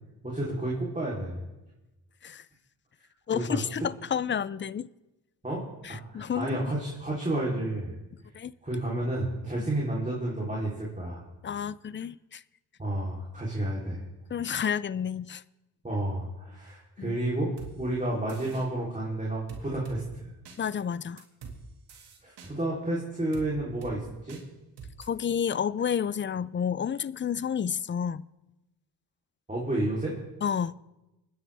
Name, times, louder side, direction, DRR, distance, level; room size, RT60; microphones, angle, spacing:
voice 1, 0.2-1.4 3.3-3.6 5.4-7.9 8.6-11.2 12.8-14.0 15.8-20.3 22.2-24.4 29.5-30.2, right 1 dB, 20° right, 3.4 m, -31 dB
voice 2, 3.3-4.9 5.8-6.7 8.3-8.5 9.6-9.7 11.4-12.4 14.3-15.4 17.0-17.2 20.6-21.2 25.0-28.2 30.4-30.8, left 8 dB, 30° left, 0.4 m, -30 dB
sound 1, 17.6-17.7 18.3-18.7 19.5-20.0 20.5-20.6 21.2-21.6 21.9-22.5 23.3-23.5 23.8-24.0 24.3-24.4 24.8-25.1, right 5 dB, 85° right, 2.2 m, -44 dB
25.5 x 10.0 x 3.5 m
cardioid pair, 70°, 40 cm